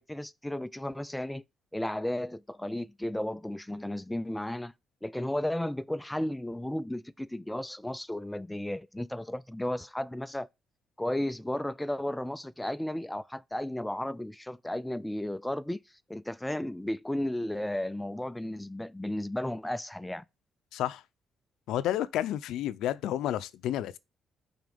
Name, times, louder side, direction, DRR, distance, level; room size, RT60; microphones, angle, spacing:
voice 1, 0.0-1.4 1.7-4.7 5.0-10.5 11.0-15.8 16.1-20.2, left 1 dB, 5° left, 0.4 m, -34 dB
voice 2, 20.7-21.0 21.7-24.0, left 12 dB, 85° left, 0.5 m, -31 dB
6.1 x 4.3 x 5.2 m
cardioid pair, 90°, 0 cm